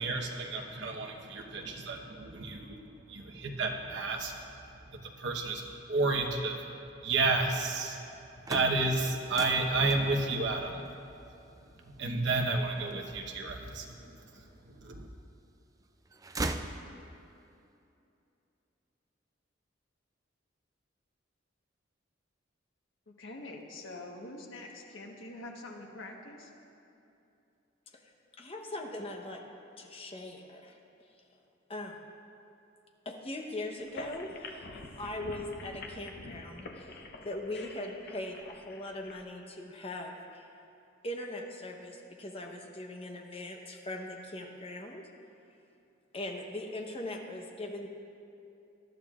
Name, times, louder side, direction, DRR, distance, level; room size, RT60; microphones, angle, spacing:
voice 1, 0.0-2.8 3.1-4.3 5.2-5.6 5.9-6.6 7.0-8.0 8.5-10.8 12.0-14.1 14.7-15.1, right 3 dB, 65° right, 2 dB, 1.1 m, -31 dB
sound 1, 8.2-14.1 14.7-15.5 15.8-17.4, right 2 dB, 20° right, 0.4 m, -40 dB
voice 2, 23.2-26.5, left 2 dB, 90° left, 1 dB, 1.4 m, -45 dB
voice 3, 28.4-29.4 29.8-30.8 31.7-31.9 33.0-40.5 41.0-45.0 46.1-47.9, left 1 dB, 30° left, 2 dB, 1.0 m, -40 dB
sound 2, 33.8-39.2, left 2 dB, 50° left, 0.8 m, -47 dB
18.5 x 12.5 x 2.5 m, 2.7 s
head